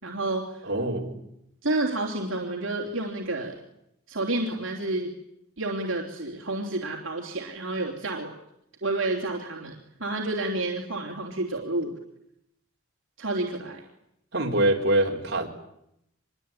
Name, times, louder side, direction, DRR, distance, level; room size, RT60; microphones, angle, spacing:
voice 1, 0.0-0.6 1.6-3.6 4.1-5.1 5.6-8.3 8.8-9.7 10.0-11.9 13.2-13.8, right 2 dB, 65° right, -1 dB, 3.4 m, -29 dB
voice 2, 0.6-1.2 14.3-15.5, right 1 dB, 50° right, 0 dB, 4.6 m, -24 dB
25.5 x 22.0 x 9.2 m, 0.79 s
head